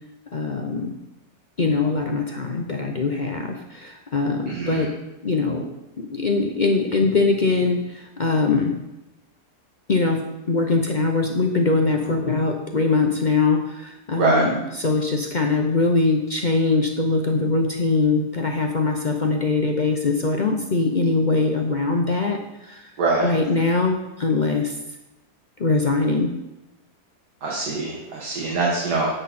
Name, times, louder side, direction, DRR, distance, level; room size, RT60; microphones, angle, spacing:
voice 1, 0.3-0.9 1.6-4.9 5.2-5.7 6.1-8.7 9.9-22.9 23.2-24.7 25.6-26.3, left 3 dB, 40° left, 3 dB, 0.7 m, -22 dB
voice 2, 4.5-4.9 14.2-14.5 23.0-23.3 27.4-29.1, right 3 dB, 80° right, -3 dB, 2.2 m, -23 dB
10.0 x 8.3 x 4.3 m, 0.95 s
omnidirectional pair, 1.7 m